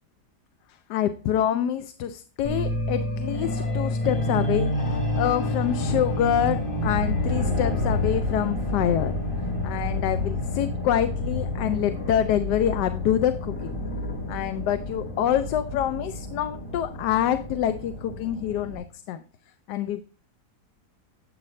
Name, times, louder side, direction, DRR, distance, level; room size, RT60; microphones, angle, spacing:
voice 1, 0.9-4.7 5.1-9.1 9.6-13.7 14.3-19.2 19.7-20.0, left 10 dB, 90° left, 10 dB, 1.2 m, -26 dB
sound 1, 2.4-18.8, left 1 dB, 15° left, 3.8 m, -29 dB
9.5 x 7.4 x 3.1 m, 0.38 s
omnidirectional pair, 1.8 m